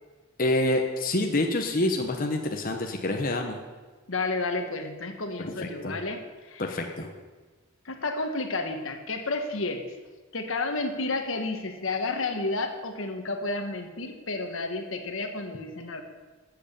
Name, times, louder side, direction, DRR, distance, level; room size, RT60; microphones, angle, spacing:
voice 1, 0.4-3.6 5.4-6.0 6.6-7.1, left 1 dB, 45° left, 3 dB, 1.1 m, -27 dB
voice 2, 4.1-6.2 6.5-6.6 7.8-9.8 10.3-16.0, left 3 dB, 75° left, 5 dB, 1.4 m, -31 dB
14.0 x 7.9 x 6.9 m, 1.3 s
head